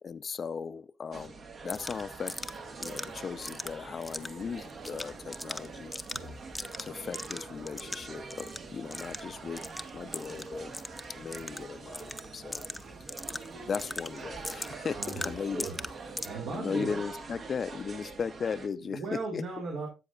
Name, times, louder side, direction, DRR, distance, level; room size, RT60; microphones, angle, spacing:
voice 1, 0.0-2.3 2.8-5.9 6.8-9.6 9.9-10.7 11.2-12.7 13.6-15.7 16.5-19.4, left 6 dB, 45° left, 0.5 m, -37 dB
sound 1, 1.1-18.7, right 4 dB, 50° right, 1.4 m, -44 dB
sound 2, 1.7-16.3, left 1 dB, 10° left, 0.7 m, -42 dB
voice 2, 14.9-15.9 16.2-17.0 18.8-19.9, right 3 dB, 70° right, 2.8 m, -37 dB
13.0 x 7.8 x 2.4 m
cardioid pair, 90°, 0 cm